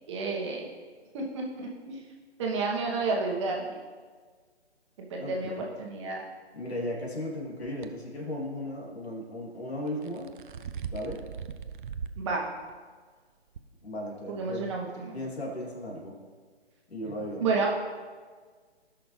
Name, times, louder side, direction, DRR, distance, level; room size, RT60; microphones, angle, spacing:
voice 1, 0.1-0.6 1.1-2.0 2.4-3.7 5.0-6.2 12.2-12.4 14.3-15.2 17.4-17.7, right 3 dB, 25° right, -2 dB, 1.3 m, -30 dB
voice 2, 5.2-5.6 6.5-10.3 10.9-11.2 13.8-14.7 15.1-16.1 16.9-17.5, left 1 dB, 70° left, -2 dB, 2.9 m, -36 dB
sound 1, 7.6-7.9 9.9-12.2 12.7-12.8 13.5-13.6, right 6 dB, 50° right, 0.5 m, -39 dB
17.0 x 6.1 x 3.3 m, 1.5 s
figure-of-eight pair, 150°, 33 cm